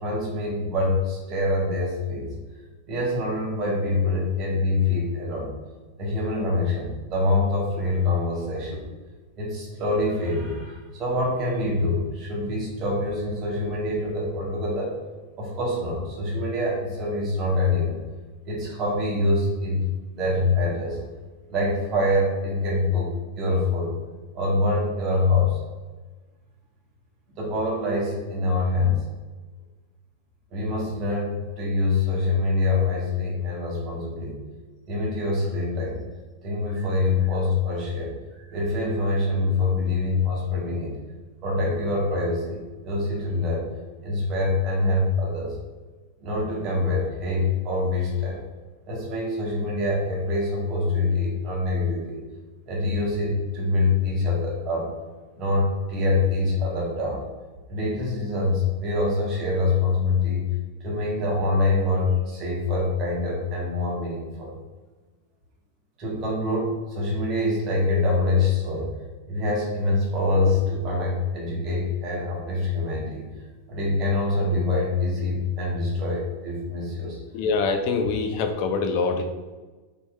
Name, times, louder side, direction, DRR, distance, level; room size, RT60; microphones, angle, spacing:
voice 1, 0.0-2.3 2.9-5.5 6.0-8.8 9.4-14.9 15.4-18.0 18.4-19.8 20.1-21.0 21.5-23.9 24.3-25.6 27.3-29.0 30.5-34.4 34.9-36.0 36.4-41.0 41.4-43.6 44.0-45.5 46.2-48.4 48.8-52.2 52.7-54.9 55.4-57.2 57.7-60.5 60.8-64.5 66.0-68.9 69.3-73.2 73.7-77.2, left 2 dB, 35° right, -3 dB, 1.3 m, -25 dB
voice 2, 77.3-79.2, left 4 dB, 45° left, 5 dB, 0.4 m, -24 dB
4.2 x 3.0 x 2.3 m, 1.3 s
figure-of-eight pair, 90°, 0 cm